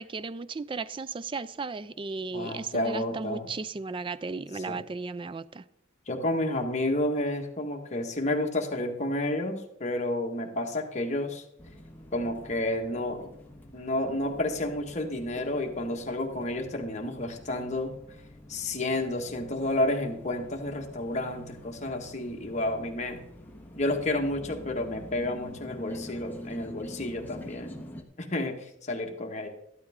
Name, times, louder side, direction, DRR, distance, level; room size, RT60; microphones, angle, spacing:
voice 1, 0.0-5.6, right 4 dB, 25° right, 0.4 m, -35 dB
voice 2, 2.3-3.5 4.5-4.8 6.1-11.4 12.1-13.3 13.7-17.9 18.5-23.2 23.7-27.9 28.2-29.5, left 1 dB, 35° left, 1.6 m, -30 dB
sound 1, 11.6-28.0, equal, 10° left, 1.4 m, -46 dB
13.5 x 12.0 x 3.7 m
head